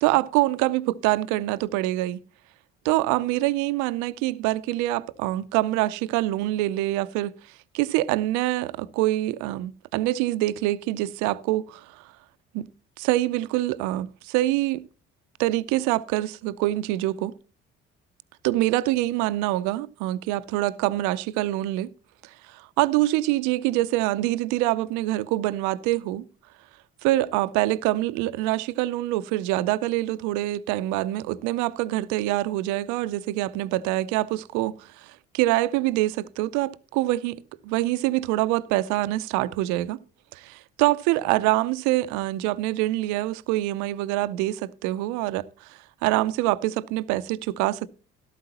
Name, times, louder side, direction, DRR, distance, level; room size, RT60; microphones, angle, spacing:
voice 1, 0.0-2.2 2.8-7.3 7.7-12.1 12.5-12.7 13.0-14.8 15.4-17.3 18.4-21.9 22.2-26.3 27.0-40.0 40.3-47.9, right 16 dB, 80° right, 0.5 m, -25 dB
13.5 x 12.0 x 2.9 m
hypercardioid pair, 60°, 29 cm